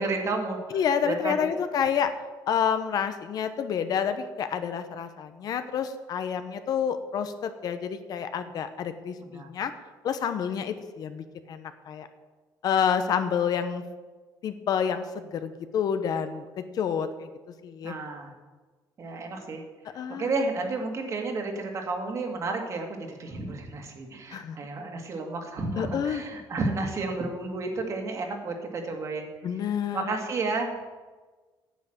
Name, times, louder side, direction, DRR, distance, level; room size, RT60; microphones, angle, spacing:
voice 1, 0.0-0.6 1.1-1.5 9.3-9.5 17.8-18.3 19.0-19.6 20.2-29.3 29.9-30.9, right 3 dB, 40° right, 3 dB, 2.0 m, -31 dB
voice 2, 0.7-2.1 2.5-9.7 10.0-12.1 12.6-13.8 14.4-16.4 16.7-17.3 17.6-17.9 19.9-20.3 24.3-24.6 25.8-26.2 29.4-30.1, left 7 dB, 55° left, 10 dB, 0.9 m, -28 dB
9.4 x 8.1 x 7.8 m, 1.3 s
cardioid pair, 150°, 8 cm